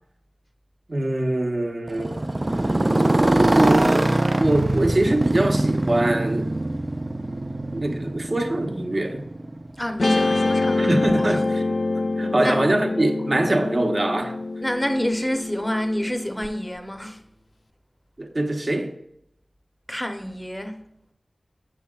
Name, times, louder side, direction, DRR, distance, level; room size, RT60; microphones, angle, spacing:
voice 1, 0.9-2.2 3.0-4.0 4.3-6.5 7.7-9.2 10.8-11.8 12.2-14.4 18.2-18.9, right 1 dB, 50° right, 0.9 m, -23 dB
Motorcycle, 1.9-9.9, right 1 dB, 30° right, 0.4 m, -23 dB
voice 2, 9.8-11.0 12.4-12.7 14.6-17.2 19.9-20.8, equal, 10° left, 0.7 m, -28 dB
Guitar, 10.0-16.5, left 2 dB, 65° left, 0.4 m, -25 dB
7.2 x 6.7 x 2.4 m
wide cardioid pair, 70°, 0 cm